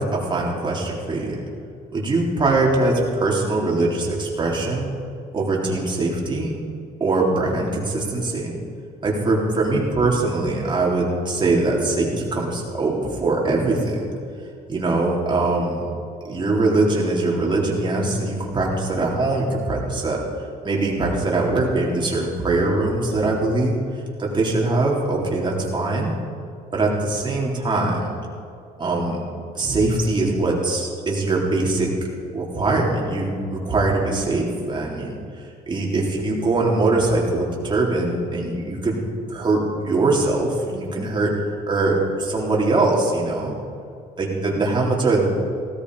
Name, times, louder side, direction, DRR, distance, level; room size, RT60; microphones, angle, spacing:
voice 1, 0.0-1.4 1.9-4.9 5.3-6.6 7.0-8.5 9.0-14.1 14.7-15.8 16.2-20.2 20.6-23.7 24.2-26.1 26.7-28.1 28.8-29.2 29.5-31.9 32.3-39.0 39.3-43.5 44.2-45.2, right 2 dB, 30° right, -3 dB, 3.8 m, -22 dB
17.0 x 14.0 x 5.0 m, 2.4 s
cardioid pair, 110°, 17 cm